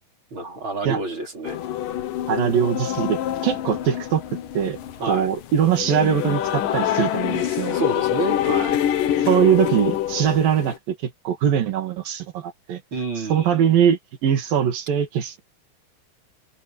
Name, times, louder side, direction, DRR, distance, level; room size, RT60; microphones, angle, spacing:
voice 1, 0.3-1.6 5.0-5.3 7.7-8.8 12.9-13.8, right 2 dB, 30° right, 5.0 m, -29 dB
sound 1, 1.4-10.8, left 11 dB, 65° left, 2.7 m, -26 dB
voice 2, 2.3-4.2 4.6-7.8 9.2-12.8 13.2-15.4, right 9 dB, 65° right, 3.9 m, -22 dB
omnidirectional pair, 4.5 m